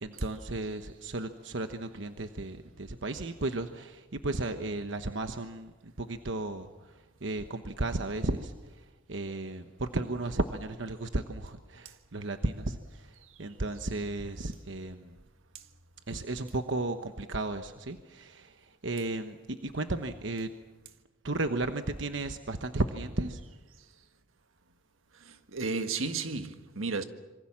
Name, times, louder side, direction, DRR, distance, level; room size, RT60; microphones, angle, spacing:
voice 1, 0.0-15.2 16.1-20.5 21.2-23.4, right 2 dB, 65° right, 1.1 m, -34 dB
voice 2, 25.2-27.0, right 4 dB, 85° right, 1.6 m, -33 dB
26.5 x 24.0 x 7.4 m
head